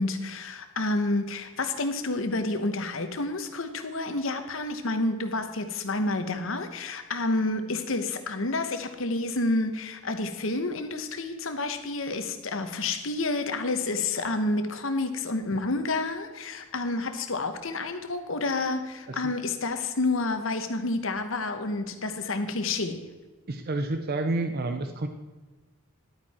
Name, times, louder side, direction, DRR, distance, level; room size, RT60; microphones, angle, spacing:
voice 1, 0.0-23.0, left 2 dB, 65° left, 8 dB, 1.1 m, -29 dB
voice 2, 23.5-25.1, right 2 dB, 45° right, 7 dB, 0.7 m, -29 dB
11.5 x 9.3 x 4.3 m, 1.3 s
head